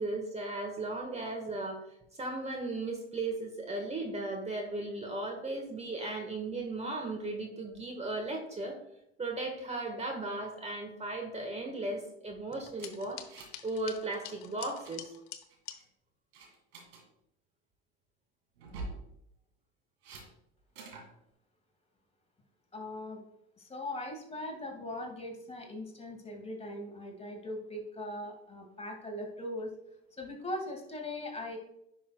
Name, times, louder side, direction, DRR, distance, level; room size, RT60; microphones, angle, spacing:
voice 1, 0.0-1.8 2.2-8.8 9.2-13.2 13.6-15.0, right 2 dB, 20° right, 2 dB, 1.5 m, -36 dB
sound 1, 12.5-15.8, left 11 dB, 55° left, 0.9 m, -47 dB
sound 2, 12.8-13.7 13.9-14.2 14.5-15.0 15.5-15.9 16.3-17.0 18.6-19.0 20.0-20.3 20.8-21.1, right 3 dB, 80° right, 2.1 m, -45 dB
voice 2, 22.7-23.2 23.6-29.7 30.2-31.6, left 1 dB, 20° left, 1 dB, 1.8 m, -40 dB
10.0 x 5.8 x 2.3 m, 0.78 s
hypercardioid pair, 80°, 32 cm